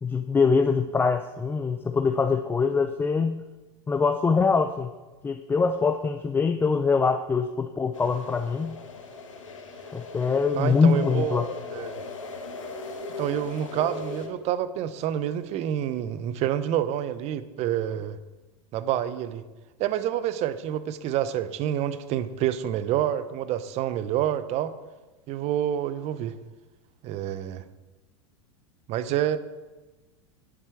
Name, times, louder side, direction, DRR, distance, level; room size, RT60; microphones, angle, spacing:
voice 1, 0.0-3.4 3.9-4.9 5.2-8.8 9.9-11.5, left 5 dB, 15° left, 8 dB, 0.4 m, -23 dB
sound 1, 7.9-14.3, left 4 dB, 90° left, 1.5 m, -37 dB
voice 2, 10.6-12.0 13.2-18.2 18.7-19.4 19.8-24.7 25.3-26.3 27.0-27.6 28.9-29.4, right 11 dB, 45° right, 14 dB, 0.7 m, -28 dB
10.0 x 7.6 x 4.7 m, 1.2 s
hypercardioid pair, 100°, 16 cm